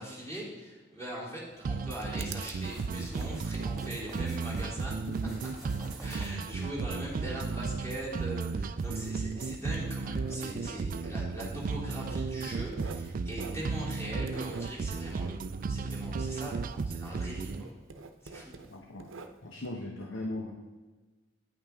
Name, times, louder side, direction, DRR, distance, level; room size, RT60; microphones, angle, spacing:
voice 1, 0.0-5.1 6.0-17.7 18.2-18.6, equal, 15° left, -6 dB, 3.4 m, -41 dB
Writing, 1.5-16.8 17.1-19.7, right 4 dB, 85° right, 0.8 m, -49 dB
sound 1, 1.7-17.7, right 4 dB, 45° right, 0.3 m, -34 dB
sound 2, 2.6-4.7 5.1-6.5, equal, ahead, 3.5 m, -49 dB
voice 2, 18.7-19.1 19.4-20.5, left 1 dB, 80° left, 1 dB, 1.1 m, -38 dB
9.5 x 8.8 x 3.7 m, 1.3 s
head